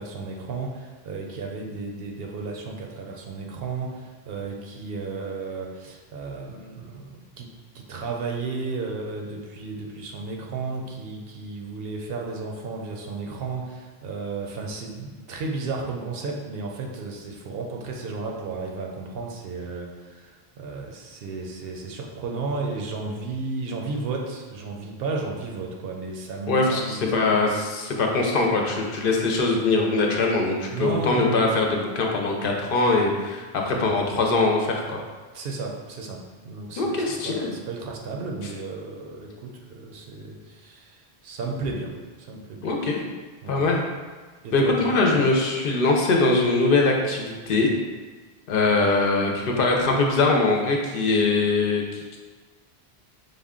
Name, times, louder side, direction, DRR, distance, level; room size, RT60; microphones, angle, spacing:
voice 1, 0.0-27.5 30.7-31.4 35.3-42.8 43.4-43.7 44.4-45.3, right 3 dB, 70° right, 1 dB, 0.8 m, -33 dB
voice 2, 26.5-35.0 36.8-37.5 42.6-43.0 43.5-43.8 44.5-47.7 48.5-52.2, left 3 dB, 65° left, 1 dB, 0.7 m, -22 dB
5.1 x 2.2 x 3.6 m, 1.4 s
omnidirectional pair, 1.1 m